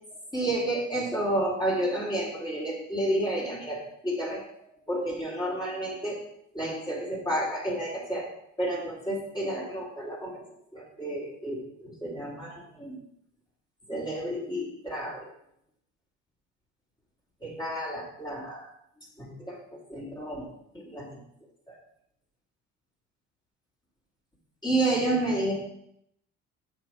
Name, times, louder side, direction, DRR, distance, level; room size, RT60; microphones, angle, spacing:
voice 1, 0.3-6.2 6.5-8.3 8.6-10.4 10.7-13.0 13.9-15.3 17.4-18.7 19.2-19.6 19.9-20.5 20.7-21.2 21.7-21.8 24.6-25.5, right 1 dB, 10° left, -5 dB, 4.1 m, -31 dB
7.6 x 5.9 x 6.1 m, 0.74 s
hypercardioid pair, 60°, 38 cm